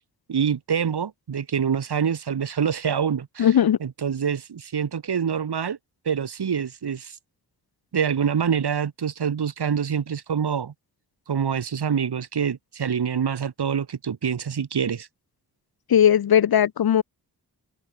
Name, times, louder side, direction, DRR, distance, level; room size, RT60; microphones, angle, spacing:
voice 1, 0.3-3.5 3.8-5.8 6.1-7.2 7.9-10.7 11.3-15.1, right 7 dB, 90° right, 3.8 m, -26 dB
voice 2, 3.4-3.8 15.9-17.0, left 9 dB, 70° left, 0.8 m, -18 dB
wide cardioid pair, 80°, 38 cm